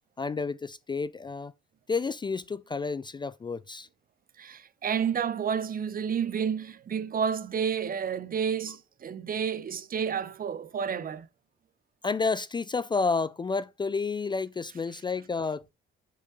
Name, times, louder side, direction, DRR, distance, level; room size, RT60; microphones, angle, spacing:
voice 1, 0.2-1.5 1.9-3.9 12.0-15.7, left 4 dB, 25° left, 0.4 m, -30 dB
voice 2, 4.4-11.3, right 7 dB, 45° right, 0.8 m, -30 dB
5.8 x 5.4 x 3.9 m
cardioid pair, 90°, 20 cm